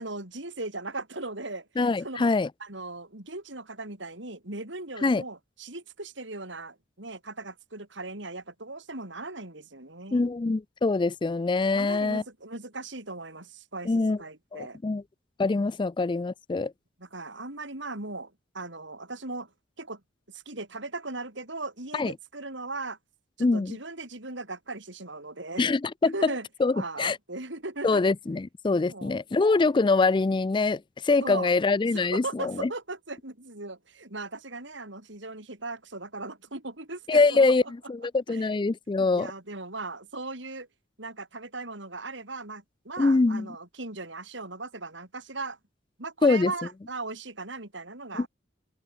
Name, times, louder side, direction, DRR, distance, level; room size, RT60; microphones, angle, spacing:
voice 1, 0.0-2.3 2.6-10.2 11.7-13.9 14.2-14.8 15.5-15.7 17.0-19.5 19.8-20.0 20.3-23.0 23.4-25.7 26.1-26.5 26.7-28.0 28.9-29.2 31.2-31.5 31.9-37.7 38.3-38.7 39.0-40.7 41.0-45.6 46.0-48.3, right 3 dB, 65° right, 4.6 m, -38 dB
voice 2, 1.8-2.5 5.0-5.2 10.1-12.2 13.9-14.2 14.5-15.0 15.4-16.7 21.9-22.1 23.4-23.8 25.6-26.3 26.6-27.2 27.8-32.7 37.1-37.6 37.9-39.3 43.0-43.5 46.2-46.5 48.1-48.3, left 3 dB, 25° left, 0.4 m, -24 dB
head